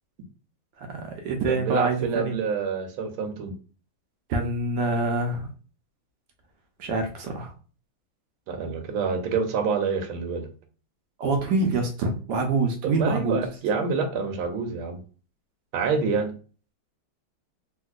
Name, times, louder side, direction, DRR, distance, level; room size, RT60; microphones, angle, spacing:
voice 1, 0.8-2.3 4.3-5.5 6.8-7.5 11.2-13.4, right 3 dB, 70° right, 4 dB, 1.1 m, -26 dB
voice 2, 1.6-3.5 8.5-10.5 12.8-15.0 15.7-16.3, right 5 dB, 85° right, 5 dB, 1.5 m, -27 dB
3.6 x 2.6 x 2.4 m, 0.37 s
omnidirectional pair, 2.2 m